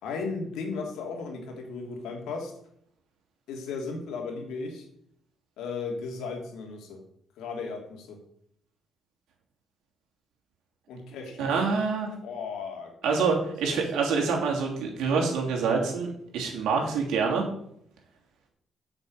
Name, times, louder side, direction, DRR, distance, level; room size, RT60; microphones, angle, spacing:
voice 1, 0.0-2.5 3.5-4.9 5.6-7.0 7.4-8.2 10.9-11.5 12.2-13.3, left 4 dB, 85° left, 2 dB, 2.8 m, -36 dB
voice 2, 11.4-12.1 13.0-17.4, right 5 dB, 85° right, 0 dB, 3.0 m, -26 dB
8.2 x 6.2 x 7.9 m, 0.70 s
cardioid pair, 90°, 0 cm